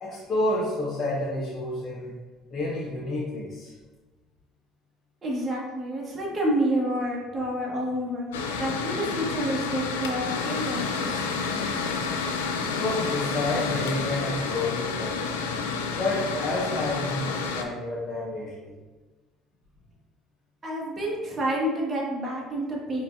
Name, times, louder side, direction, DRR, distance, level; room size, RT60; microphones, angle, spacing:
voice 1, 0.0-2.1 2.5-3.7 12.7-15.4 15.9-18.7, left 2 dB, 45° left, -6 dB, 1.0 m, -29 dB
voice 2, 5.2-11.2 20.6-23.0, right 1 dB, 30° right, -4 dB, 1.4 m, -29 dB
Mechanical fan, 8.3-17.6, left 5 dB, 90° left, 0.3 m, -29 dB
4.5 x 3.4 x 2.6 m, 1.3 s
hypercardioid pair, 70°, 0 cm